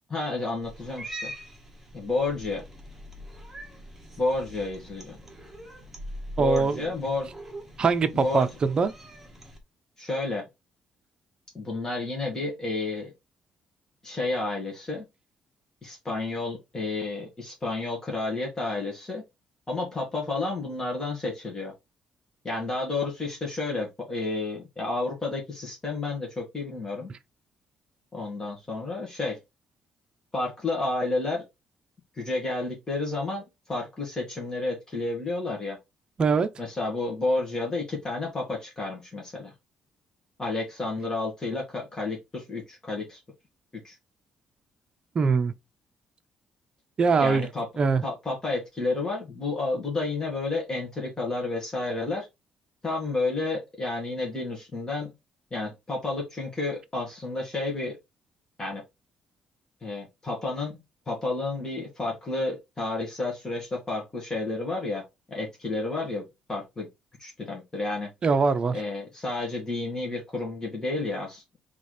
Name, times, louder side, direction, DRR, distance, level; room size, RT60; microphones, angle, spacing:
voice 1, 0.1-1.3 1.9-2.6 4.2-5.2 6.4-7.3 8.1-8.5 10.0-10.4 11.5-13.1 14.0-15.1 15.8-19.2 19.7-21.7 22.4-27.1 28.1-29.4 30.3-31.4 32.1-35.8 36.6-39.5 40.4-43.2 43.8-44.0 47.2-47.7 48.0-52.3 52.8-55.1 55.5-58.0 58.6-58.8 59.8-60.8 61.1-65.0 65.3-66.9 67.2-68.1 68.7-71.6, left 2 dB, 25° left, 1.9 m, -31 dB
Cat, 0.6-9.6, equal, 10° right, 1.5 m, -43 dB
voice 2, 6.4-6.8 7.8-8.9 36.2-36.5 45.1-45.5 47.0-47.5 47.8-48.0 68.2-68.8, right 5 dB, 40° right, 0.6 m, -22 dB
4.1 x 3.5 x 3.3 m
cardioid pair, 105°, 2 cm